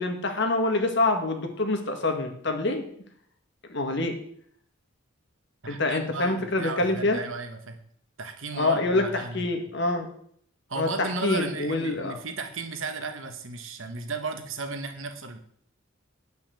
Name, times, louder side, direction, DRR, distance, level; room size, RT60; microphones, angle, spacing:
voice 1, 0.0-2.8 3.7-4.1 5.7-7.2 8.5-9.0 9.3-10.1 10.8-12.1, left 2 dB, 55° left, 5 dB, 1.8 m, -26 dB
voice 2, 5.6-7.8 8.2-9.4 10.7-15.4, right 3 dB, 70° right, 6 dB, 1.5 m, -35 dB
9.5 x 5.9 x 7.6 m, 0.64 s
head